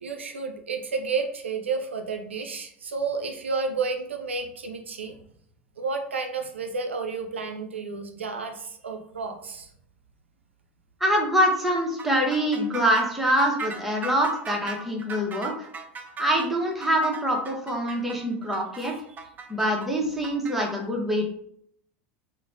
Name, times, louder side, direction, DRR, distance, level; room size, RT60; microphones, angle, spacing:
voice 1, 0.0-5.2 5.8-9.7, right 4 dB, 85° right, 4 dB, 0.4 m, -31 dB
voice 2, 11.0-15.5 16.2-18.9 19.5-21.3, equal, 5° right, -2 dB, 0.8 m, -24 dB
sound 1, 12.0-20.5, right 4 dB, 25° right, 0.4 m, -38 dB
3.1 x 2.1 x 2.6 m, 0.66 s
hypercardioid pair, 80°, 6 cm